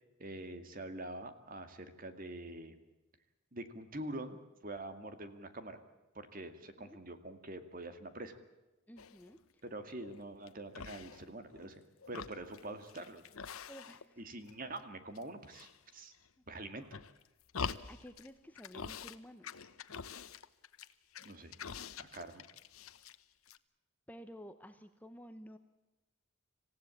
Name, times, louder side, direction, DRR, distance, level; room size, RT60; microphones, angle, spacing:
voice 1, 0.2-2.7 3.5-4.4 4.6-5.8 6.1-8.4 9.6-11.8 12.1-13.2 14.2-16.1 16.5-17.0 21.2-21.6 22.0-22.4, right 1 dB, 40° right, 9 dB, 2.2 m, -45 dB
voice 2, 8.9-9.6 13.7-14.2 17.9-19.5 24.1-25.6, equal, 10° left, 9 dB, 0.9 m, -52 dB
sound 1, 9.0-9.4 9.9-10.5 10.7-11.7 12.0-14.2 14.5-15.2 15.5-16.3 16.8-18.3 18.6-19.2 19.4-23.2 23.5-23.6, left 6 dB, 80° left, 1.0 m, -46 dB
27.0 x 16.0 x 8.5 m, 1.1 s
head